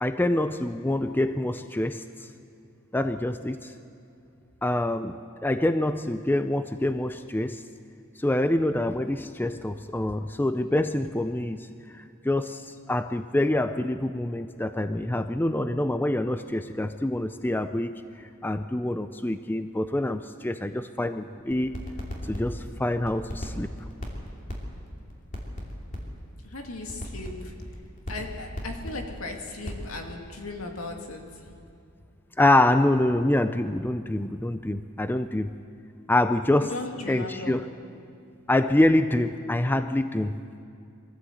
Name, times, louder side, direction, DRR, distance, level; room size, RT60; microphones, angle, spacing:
voice 1, 0.0-2.0 2.9-3.7 4.6-7.6 8.2-11.7 11.9-21.7 22.3-23.7 32.4-35.5 36.1-36.8 37.1-37.7 38.5-40.4, left 1 dB, 10° left, 10 dB, 0.5 m, -26 dB
sound 1, 21.5-31.0 31.3-31.7, left 1 dB, 40° left, 3.1 m, -37 dB
voice 2, 26.4-27.5 28.1-31.4 36.6-37.6, left 2 dB, 80° left, 2 dB, 2.3 m, -37 dB
23.0 x 14.5 x 7.9 m, 2.5 s
head